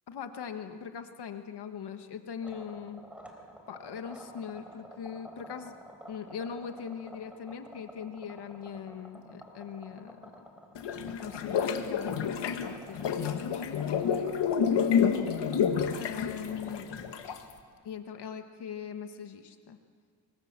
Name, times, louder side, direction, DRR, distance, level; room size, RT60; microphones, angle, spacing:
voice 1, 0.1-3.0 3.7-5.7 6.1-10.3 11.2-14.3 14.6-15.0 16.0-16.9 17.8-19.8, left 7 dB, 70° left, 7 dB, 1.6 m, -41 dB
sound 1, 2.4-15.9, equal, 5° right, 4.0 m, -50 dB
sound 2, 10.8-17.5, left 7 dB, 90° left, 1.9 m, -29 dB
24.5 x 24.5 x 7.5 m, 2.2 s
wide cardioid pair, 135°, 41 cm